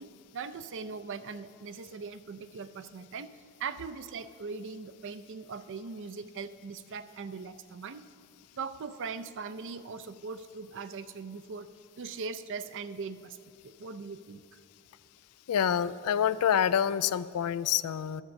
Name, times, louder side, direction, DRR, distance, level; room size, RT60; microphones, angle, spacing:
voice 1, 0.0-3.3 3.6-8.0 8.6-11.7 12.0-13.4 13.8-14.4, right 5 dB, 55° right, 13 dB, 0.5 m, -40 dB
voice 2, 15.5-18.2, left 9 dB, 80° left, 16 dB, 0.4 m, -27 dB
13.0 x 7.2 x 6.3 m, 2.4 s
head